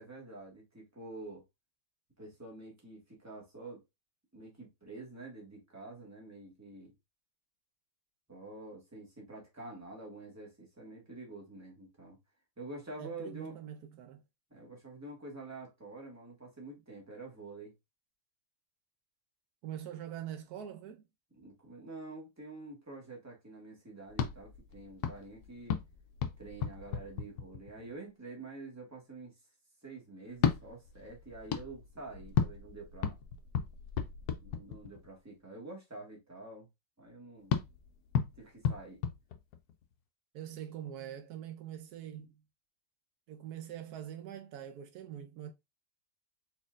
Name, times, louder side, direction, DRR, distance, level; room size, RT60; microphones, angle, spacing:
voice 1, 0.0-1.4 2.2-3.8 4.3-6.9 8.3-12.2 12.6-13.5 14.5-17.7 21.3-25.8 26.4-29.4 29.8-33.2 34.4-36.7 37.0-37.5 38.4-39.0, right 2 dB, 10° right, 1.5 m, -47 dB
voice 2, 13.0-14.2 19.6-21.0 40.3-42.4 43.3-45.5, right 10 dB, 80° right, 1.2 m, -44 dB
sound 1, 24.1-27.9 30.3-35.2 37.5-39.9, left 8 dB, 85° left, 1.2 m, -35 dB
4.2 x 4.1 x 2.4 m
omnidirectional pair, 1.6 m